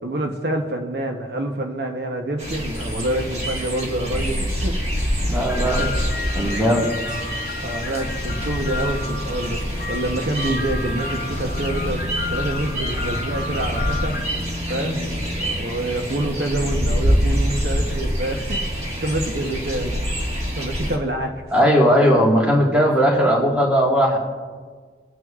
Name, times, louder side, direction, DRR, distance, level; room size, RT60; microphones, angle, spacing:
voice 1, 0.0-4.8 5.3-6.0 7.6-9.6 9.9-12.0 12.3-14.2 14.7-18.6 19.0-19.9 20.3-21.3, right 1 dB, 65° right, 3 dB, 0.9 m, -27 dB
sound 1, 2.4-21.0, equal, 35° right, 1.6 m, -26 dB
sound 2, 5.1-14.3, left 3 dB, 55° left, 0.9 m, -32 dB
voice 2, 5.2-5.8 6.3-7.2 21.5-24.2, equal, 5° right, -3 dB, 1.7 m, -18 dB
21.5 x 9.3 x 2.4 m, 1.6 s
head